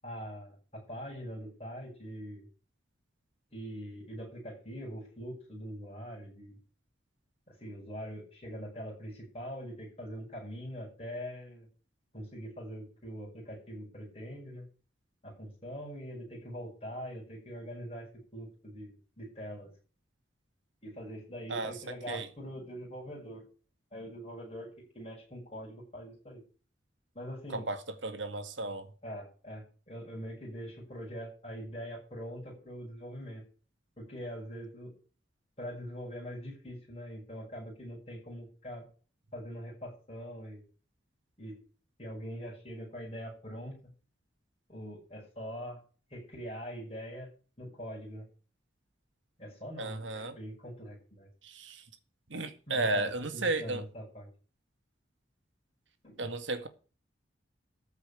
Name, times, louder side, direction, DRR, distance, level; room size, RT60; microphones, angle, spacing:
voice 1, 0.0-2.4 3.5-6.6 7.5-11.7 12.1-14.7 15.2-18.1 18.3-19.7 20.8-23.5 23.9-24.7 24.9-26.4 27.1-27.7 29.0-33.4 34.0-34.9 35.6-38.9 39.3-40.6 41.4-41.6 42.0-43.8 44.7-45.8 46.1-47.3 47.6-48.2 49.4-51.3 52.7-54.3 56.0-56.3, equal, 30° left, 7.6 m, -43 dB
voice 2, 27.5-28.9 49.8-50.4 51.4-51.8 52.3-53.9 56.2-56.7, right 2 dB, 85° right, 2.0 m, -34 dB
14.0 x 5.9 x 8.8 m
head